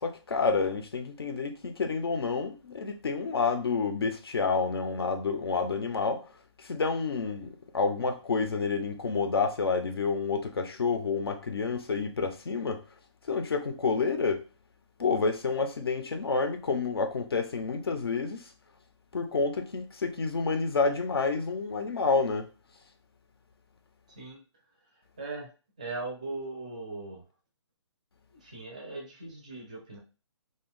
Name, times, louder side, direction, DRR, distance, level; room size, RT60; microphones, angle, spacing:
voice 1, 0.0-6.3 6.6-12.8 13.3-14.4 15.0-18.5 19.1-22.5, left 4 dB, 55° left, 0.5 m, -29 dB
voice 2, 25.2-25.5 25.8-27.2 28.3-30.0, right 3 dB, 15° right, 0.5 m, -39 dB
2.6 x 2.2 x 3.6 m
hypercardioid pair, 175°, 16 cm